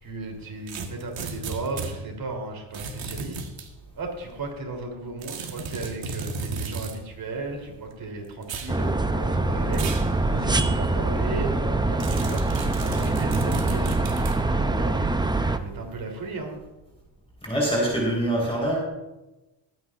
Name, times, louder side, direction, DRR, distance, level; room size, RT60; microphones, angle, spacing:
voice 1, 0.0-3.4 4.0-15.0 15.6-16.6, right 3 dB, 45° right, 1 dB, 3.5 m, -35 dB
sound 1, 0.7-2.0 2.7-3.7 5.2-7.0 8.4-8.8 9.7-10.1 10.6-10.7 12.0-14.4, right 4 dB, 65° right, 1.6 m, -34 dB
sound 2, 8.7-15.6, right 2 dB, 10° right, 0.6 m, -24 dB
voice 2, 17.4-18.8, right 1 dB, 10° left, -3 dB, 4.3 m, -24 dB
21.5 x 9.4 x 2.6 m, 1.0 s
cardioid pair, 105°, 49 cm